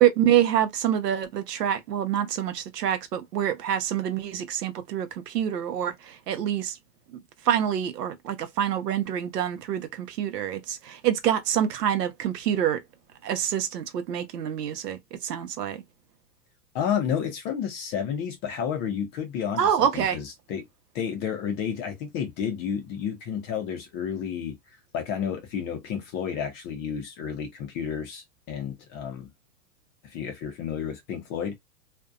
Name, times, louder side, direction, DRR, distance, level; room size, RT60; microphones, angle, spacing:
voice 1, 0.0-6.8 7.5-12.8 13.2-15.8 19.6-20.2, right 10 dB, 85° right, 0.8 m, -26 dB
voice 2, 16.7-20.7 20.9-24.6 24.9-29.3 30.0-31.6, left 8 dB, 25° left, 0.5 m, -31 dB
2.6 x 2.1 x 2.4 m
hypercardioid pair, 130°, 46 cm